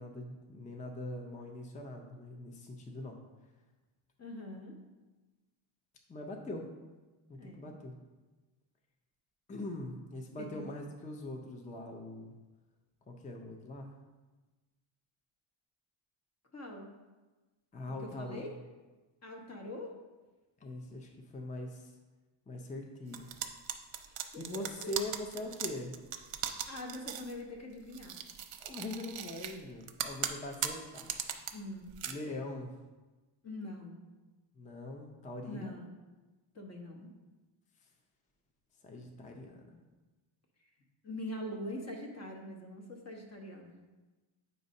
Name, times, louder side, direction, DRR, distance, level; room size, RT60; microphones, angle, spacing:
voice 1, 0.0-3.2 6.1-6.7 7.3-7.9 9.5-12.3 13.1-13.9 17.7-18.5 20.6-21.9 22.5-23.3 23.9-24.0 24.3-26.0 28.6-31.1 32.1-32.8 34.5-35.7 38.8-39.8, left 1 dB, 15° left, 2 dB, 0.5 m, -42 dB
voice 2, 4.2-4.7 7.4-7.7 10.4-10.6 16.5-16.9 18.0-18.5 19.2-19.9 24.1-24.9 26.7-28.2 31.5-31.9 33.4-34.0 35.5-35.9 36.5-37.1 41.0-43.7, left 1 dB, 30° left, 1 dB, 1.1 m, -43 dB
sound 1, 23.1-27.3 27.9-29.6 29.9-31.5 31.9-32.1, right 10 dB, 65° right, 0.7 m, -38 dB
7.9 x 2.7 x 5.2 m, 1.2 s
cardioid pair, 135°, 49 cm